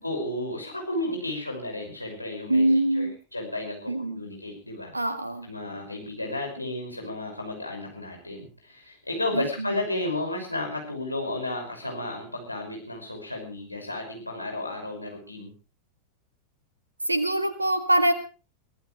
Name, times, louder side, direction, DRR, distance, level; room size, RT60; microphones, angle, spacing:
voice 1, 0.0-4.9 5.4-15.5, left 2 dB, 85° left, 1 dB, 5.8 m, -33 dB
voice 2, 2.5-3.1 3.9-4.2 4.9-5.5 9.3-9.4 17.1-18.1, right 1 dB, 85° right, 8 dB, 1.5 m, -23 dB
23.0 x 15.0 x 3.3 m, 0.34 s
figure-of-eight pair, 90°, 0 cm